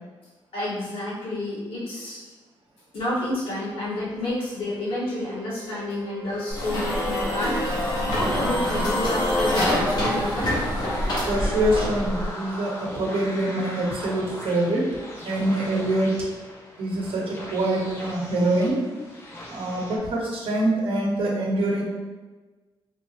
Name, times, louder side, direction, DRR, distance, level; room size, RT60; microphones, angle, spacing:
voice 1, 0.5-2.2 2.9-7.8 8.1-10.5, left 1 dB, 75° left, -8 dB, 1.4 m, -29 dB
sound 1, 4.1-9.8 13.8-13.9, left 1 dB, 30° right, 1.2 m, -38 dB
sound 2, 6.2-20.0, left 1 dB, 25° left, 0.6 m, -39 dB
sound 3, 6.5-12.3, left 1 dB, 45° left, 1.1 m, -25 dB
voice 2, 11.3-14.9 15.2-16.1 16.8-18.8 19.5-21.8, right 1 dB, 80° right, -2 dB, 0.9 m, -25 dB
3.4 x 2.8 x 2.9 m, 1.3 s
wide cardioid pair, 160°, 9 cm